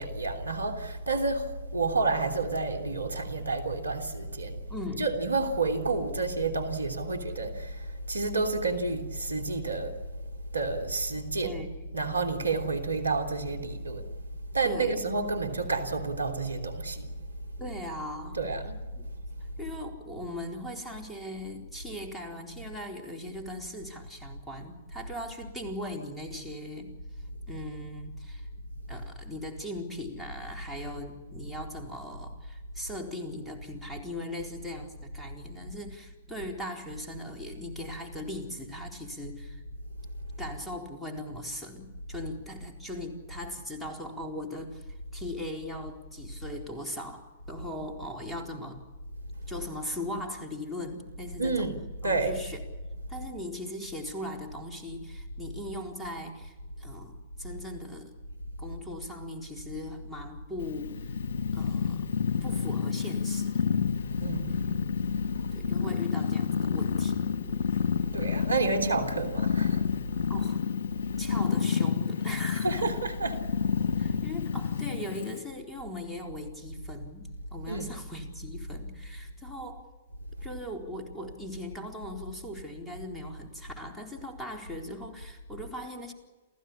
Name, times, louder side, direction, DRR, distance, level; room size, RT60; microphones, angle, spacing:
voice 1, 0.0-4.6 5.0-10.0 10.5-11.6 11.9-14.1 14.5-17.1 18.3-18.8 51.4-52.4 64.2-64.5 68.1-69.8 72.6-73.4 77.7-77.9, right 3 dB, 85° right, 3.1 m, -30 dB
voice 2, 4.7-5.1 11.4-11.9 14.6-15.1 17.6-18.4 19.0-19.1 19.6-27.0 27.5-28.5 28.9-39.6 40.4-48.8 49.5-51.7 52.0-52.6 53.1-58.2 58.6-61.2 61.5-63.8 64.5-64.8 65.5-67.2 70.3-70.6 71.2-72.9 74.0-79.9 80.4-86.1, left 1 dB, ahead, 4.1 m, -39 dB
Purr, 60.6-75.4, left 6 dB, 60° left, 1.9 m, -29 dB
28.5 x 16.0 x 8.7 m
figure-of-eight pair, 115°, 0 cm